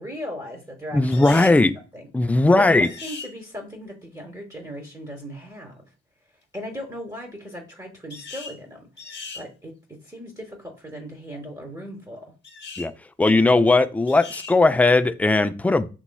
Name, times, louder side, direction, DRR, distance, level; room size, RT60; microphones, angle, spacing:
voice 1, 0.0-1.5 1.9-5.8 6.5-8.9 9.3-12.3, equal, 10° right, 1.0 m, -38 dB
voice 2, 0.9-1.7 2.1-2.9 12.8-12.9 13.2-15.9, left 2 dB, 5° left, 0.3 m, -18 dB
sound 1, 1.1-1.6 2.8-3.3 8.1-8.6 9.0-9.4 12.4-12.9 14.1-14.6, left 4 dB, 35° left, 1.0 m, -38 dB
6.2 x 2.9 x 2.3 m
hypercardioid pair, 50°, 30 cm